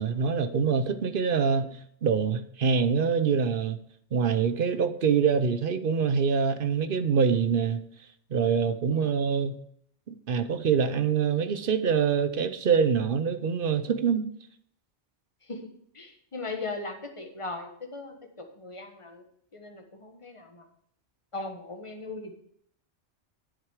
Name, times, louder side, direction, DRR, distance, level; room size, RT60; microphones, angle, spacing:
voice 1, 0.0-3.8 4.1-7.8 8.3-9.6 10.1-14.3, right 6 dB, 55° right, 0.8 m, -25 dB
voice 2, 15.9-19.3 19.5-20.7 21.3-22.3, left 3 dB, 25° left, 1.4 m, -39 dB
10.5 x 7.9 x 4.8 m
omnidirectional pair, 1.2 m